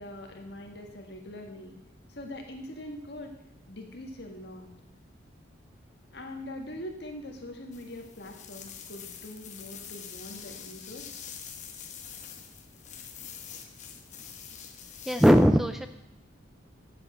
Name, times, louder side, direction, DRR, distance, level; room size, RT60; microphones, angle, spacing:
voice 1, 0.0-1.7 2.1-3.3 3.7-4.7 6.1-11.1, left 1 dB, 60° left, 3 dB, 1.7 m, -42 dB
sound 1, 7.7-15.3, left 8 dB, 40° left, 1.0 m, -45 dB
voice 2, 15.1-15.9, equal, ahead, 8 dB, 0.3 m, -19 dB
8.1 x 7.5 x 7.6 m, 0.88 s
head